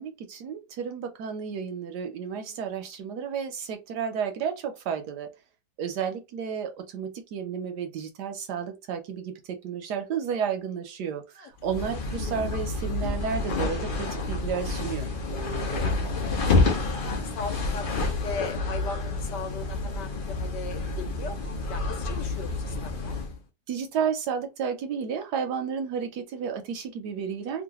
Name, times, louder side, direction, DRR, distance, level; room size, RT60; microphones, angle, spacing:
voice 1, 0.0-5.3 5.8-15.1 23.7-27.6, right 7 dB, 70° right, 1.1 m, -32 dB
sound 1, 11.6-23.4, left 3 dB, 90° left, 0.4 m, -29 dB
voice 2, 16.3-23.2, left 5 dB, 75° left, 1.2 m, -38 dB
3.1 x 2.4 x 2.8 m
omnidirectional pair, 2.0 m